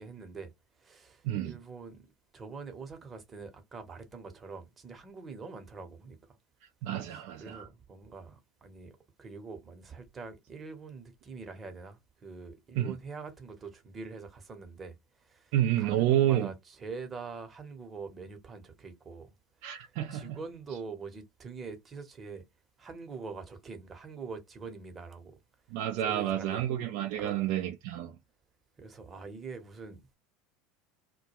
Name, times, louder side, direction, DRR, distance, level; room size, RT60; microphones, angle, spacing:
voice 1, 0.0-2.1 2.3-6.4 7.1-19.3 19.6-22.4 22.8-25.4 26.0-26.7 27.1-27.4 28.8-30.2, right 4 dB, 30° right, 0.8 m, -44 dB
voice 2, 6.8-7.7 12.8-12.9 15.5-16.5 19.6-20.4 25.7-28.1, right 12 dB, 65° right, 0.4 m, -29 dB
2.2 x 2.2 x 2.8 m
hypercardioid pair, 80°, 0 cm